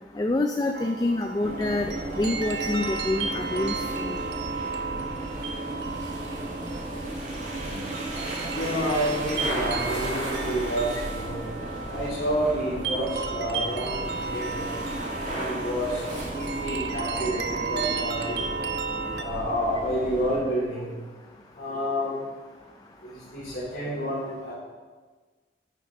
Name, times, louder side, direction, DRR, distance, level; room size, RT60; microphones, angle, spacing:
voice 1, 0.2-1.9 2.2-4.2, left 2 dB, 20° left, 5 dB, 0.3 m, -27 dB
sound 1, 0.7-19.2, right 5 dB, 70° right, 0.6 m, -34 dB
sound 2, 1.4-20.4, right 1 dB, 45° right, 1.7 m, -34 dB
voice 2, 8.5-11.4 11.9-14.7 15.2-18.4 19.2-20.9 21.6-22.2 23.0-24.5, equal, 70° left, -10 dB, 3.1 m, -29 dB
10.0 x 7.2 x 3.8 m, 1.4 s
head